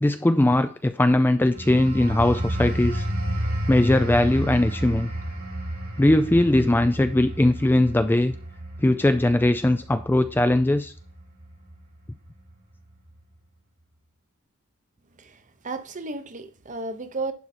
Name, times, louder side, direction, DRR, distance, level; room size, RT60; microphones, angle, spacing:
voice 1, 0.0-3.0 3.7-5.1 6.0-8.3 8.8-10.9, left 1 dB, 10° left, 0.3 m, -20 dB
sound 1, 1.5-11.8 12.2-12.5, right 1 dB, 85° right, 4.7 m, -31 dB
voice 2, 15.2-17.3, right 3 dB, 35° right, 0.8 m, -33 dB
11.0 x 4.6 x 4.2 m
head